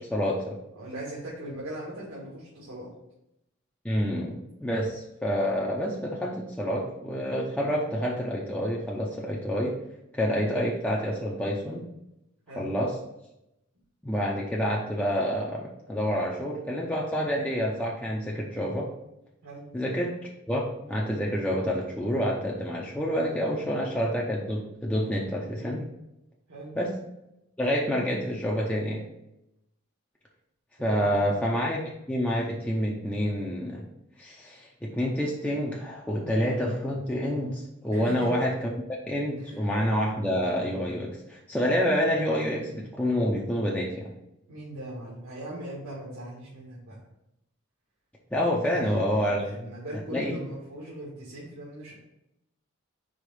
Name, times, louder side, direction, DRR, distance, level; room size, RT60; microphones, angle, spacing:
voice 1, 0.0-0.6 3.8-9.8 10.1-11.9 12.6-12.9 14.0-18.9 19.7-20.1 20.5-25.8 26.8-26.9 27.6-29.1 30.8-31.8 32.1-33.8 34.2-38.5 39.1-44.1 48.3-49.4 50.1-50.4, equal, 5° left, -4 dB, 0.6 m, -28 dB
voice 2, 0.7-2.9 12.5-12.7 19.4-19.7 26.5-26.8 30.8-31.4 36.1-36.3 37.9-38.3 39.4-39.7 44.5-47.0 48.6-51.9, right 1 dB, 85° right, -7 dB, 1.8 m, -40 dB
5.0 x 3.6 x 5.3 m, 0.87 s
head